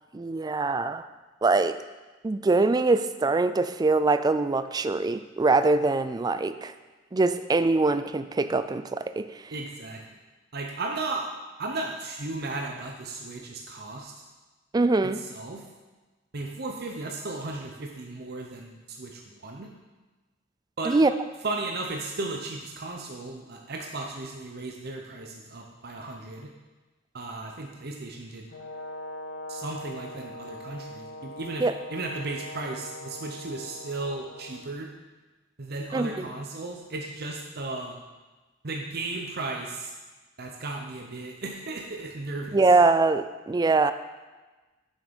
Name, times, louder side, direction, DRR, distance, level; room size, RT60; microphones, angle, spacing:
voice 1, 0.1-1.1 1.4-1.8 2.2-6.7 7.1-9.3 14.7-15.2 20.8-21.1 31.6-31.7 35.9-36.2 42.5-43.9, right 3 dB, 20° right, 11 dB, 0.3 m, -23 dB
voice 2, 9.5-10.0 10.5-11.3 11.6-14.1 15.1-15.6 16.3-19.7 20.8-21.0 21.4-26.5 27.1-28.5 29.5-31.6 31.9-34.9 35.6-38.0 38.6-39.9 40.4-42.6, right 2 dB, 55° right, 1 dB, 0.8 m, -35 dB
Brass instrument, 28.5-34.6, left 1 dB, 65° left, 1.5 m, -41 dB
7.3 x 6.4 x 5.2 m, 1.2 s
head